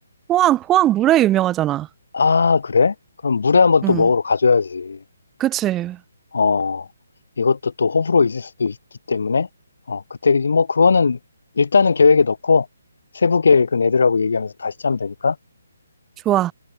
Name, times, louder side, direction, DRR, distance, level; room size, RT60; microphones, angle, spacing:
voice 1, 0.3-1.9 3.8-4.1 5.4-6.0 16.2-16.5, right 13 dB, 15° right, 3.2 m, -18 dB
voice 2, 2.1-2.9 3.2-5.0 6.3-6.9 7.4-8.8 9.1-9.5 9.9-11.2 11.6-12.7 13.1-15.3, left 5 dB, 70° left, 3.4 m, -18 dB
hypercardioid pair, 165°, 0 cm